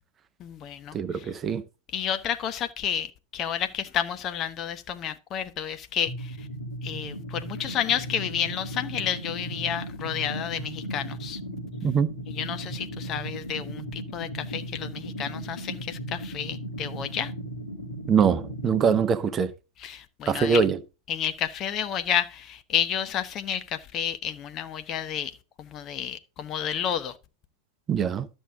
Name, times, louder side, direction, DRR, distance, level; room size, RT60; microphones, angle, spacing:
voice 1, 0.4-1.0 1.9-6.3 6.8-11.4 12.3-17.3 19.8-20.6 21.1-25.3 25.6-27.1, left 9 dB, 30° left, 0.9 m, -30 dB
voice 2, 0.9-1.6 11.8-12.1 18.1-19.5 20.3-20.8 27.9-28.3, right 6 dB, 25° right, 0.8 m, -23 dB
sound 1, 6.1-19.1, right 1 dB, 75° left, 1.8 m, -36 dB
12.5 x 6.4 x 3.7 m
figure-of-eight pair, 90°, 0 cm